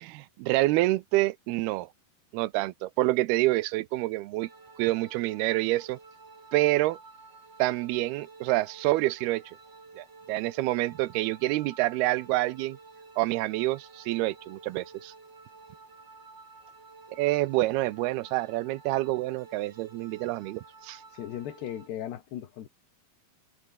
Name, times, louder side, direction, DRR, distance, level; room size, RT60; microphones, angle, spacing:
voice 1, 0.0-1.9 2.3-4.5 4.8-6.0 6.5-7.0 7.6-9.6 10.0-12.8 13.2-15.1 17.2-21.0, right 18 dB, 85° right, 2.7 m, -27 dB
sound 1, 4.4-21.9, right 3 dB, 35° right, 6.5 m, -52 dB
voice 2, 21.1-22.7, left 11 dB, 90° left, 4.2 m, -37 dB
omnidirectional pair, 4.7 m